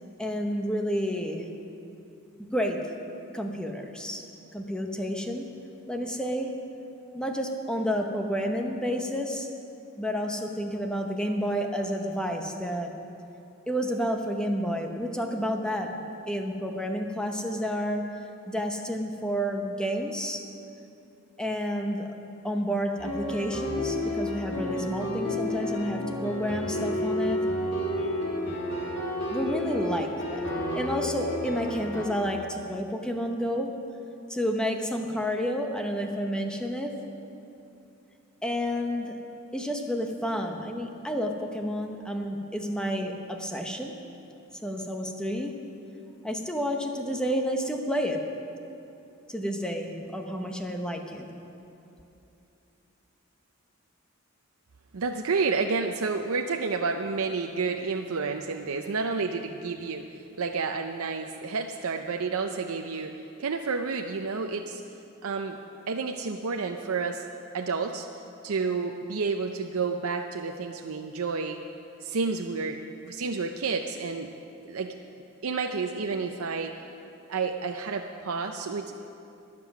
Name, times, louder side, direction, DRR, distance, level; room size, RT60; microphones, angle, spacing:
voice 1, 0.2-1.4 2.4-2.9 3.3-4.2 4.5-5.4 5.9-6.5 7.1-9.5 10.0-12.9 13.7-16.0 16.3-18.0 18.5-20.4 21.4-22.1 22.4-27.4 29.3-30.5 30.8-33.7 34.3-37.0 38.4-39.2 39.5-43.9 44.6-45.6 46.2-48.2 49.3-51.3, equal, 5° left, 3 dB, 0.9 m, -30 dB
sound 1, 23.0-32.0, left 1 dB, 55° left, 2.6 m, -31 dB
voice 2, 54.9-64.8 65.2-65.6 65.9-67.3 67.5-68.1 68.4-71.6 72.0-74.3 74.6-74.9 75.4-76.7 77.3-78.9, right 4 dB, 80° right, 4 dB, 0.6 m, -30 dB
21.0 x 7.6 x 6.0 m, 2.8 s
head